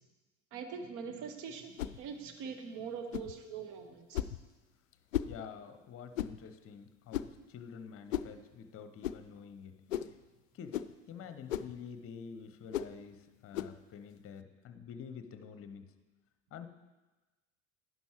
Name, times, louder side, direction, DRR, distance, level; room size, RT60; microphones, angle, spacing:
voice 1, 0.5-4.2, right 6 dB, 45° right, 6 dB, 1.4 m, -43 dB
sound 1, 1.8-2.0 3.1-3.3 4.1-4.4 5.1-5.4 6.1-6.4 7.1-7.4 8.1-8.3 9.0-9.2 9.9-10.2 10.7-10.9 11.5-11.7 12.7-12.9 13.5-13.8, left 11 dB, 75° left, 0.5 m, -35 dB
voice 2, 5.2-10.1 10.5-15.8 16.5-16.7, left 7 dB, 35° left, 9 dB, 0.9 m, -48 dB
11.0 x 11.0 x 3.1 m, 1.2 s
figure-of-eight pair, 70°, 40 cm